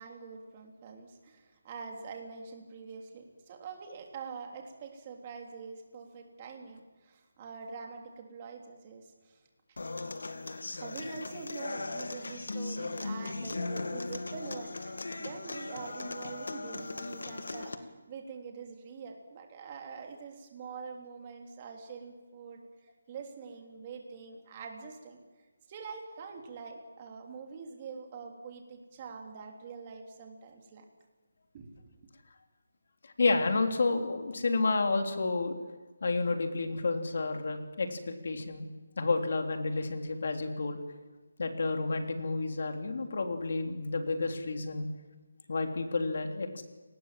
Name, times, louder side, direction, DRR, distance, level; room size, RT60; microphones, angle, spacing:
voice 1, 0.0-9.4 10.8-25.2 25.7-30.8 31.5-32.0, right 5 dB, 20° right, 3 dB, 3.3 m, -45 dB
Human voice / Acoustic guitar, 9.8-17.7, left 3 dB, 85° left, 2.4 m, -38 dB
voice 2, 33.0-35.5 36.0-38.7 39.0-40.8 41.4-44.9 45.5-46.6, left 3 dB, 50° left, 5 dB, 3.4 m, -30 dB
29.5 x 19.5 x 7.6 m, 1.3 s
hypercardioid pair, 175°, 0 cm